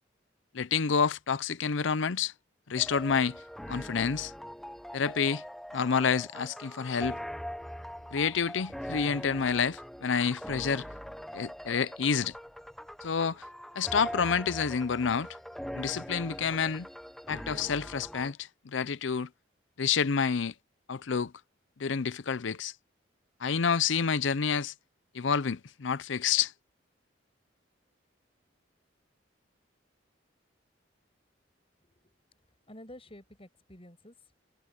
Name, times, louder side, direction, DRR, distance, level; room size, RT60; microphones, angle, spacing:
voice 1, 0.5-2.3 2.7-3.4 3.7-4.3 4.9-5.4 5.7-7.2 8.1-10.9 11.3-12.3 13.0-13.4 13.8-15.3 15.7-16.9 17.3-19.3 19.8-20.5 20.9-21.3 21.8-22.7 23.4-24.7 25.1-26.5, left 6 dB, 75° left, 0.6 m, -28 dB
sound 1, 2.8-18.3, equal, ahead, 0.8 m, -42 dB
voice 2, 32.7-34.4, left 1 dB, 30° left, 6.5 m, -51 dB
head